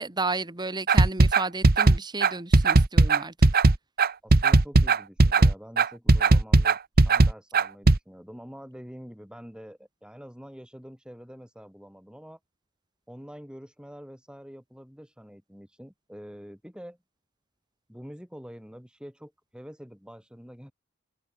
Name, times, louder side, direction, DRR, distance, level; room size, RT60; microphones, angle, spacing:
voice 1, 0.0-3.3, right 3 dB, 20° right, 1.4 m, -32 dB
sound 1, 0.9-8.0, right 2 dB, 45° right, 1.1 m, -18 dB
voice 2, 4.2-12.4 13.1-17.0 17.9-20.7, equal, 5° right, 5.5 m, -46 dB
open air
head